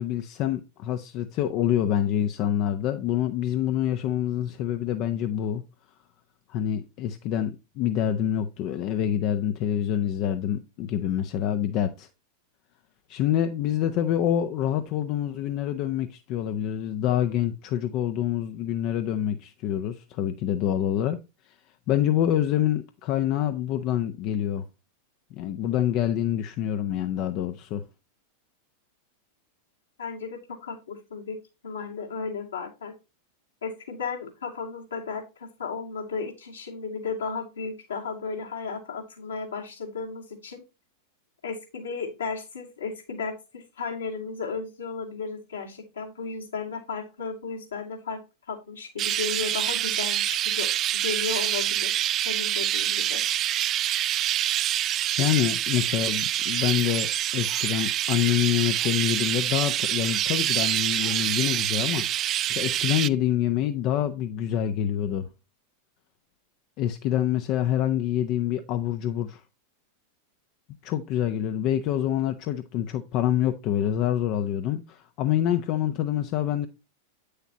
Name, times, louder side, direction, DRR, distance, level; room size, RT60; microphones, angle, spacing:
voice 1, 0.0-5.6 6.5-12.1 13.1-21.2 21.5-21.6 21.9-24.6 25.3-27.8 55.2-65.3 66.8-69.4 70.8-76.7, left 11 dB, 40° left, 0.7 m, -26 dB
voice 2, 30.0-31.4 31.6-32.9 33.6-40.6 41.4-48.2 48.5-50.7 51.0-53.2, left 5 dB, 70° left, 2.5 m, -34 dB
Chirp tweet, 49.0-63.1, right 12 dB, 30° right, 0.3 m, -26 dB
9.2 x 6.6 x 2.9 m
figure-of-eight pair, 90°, 0 cm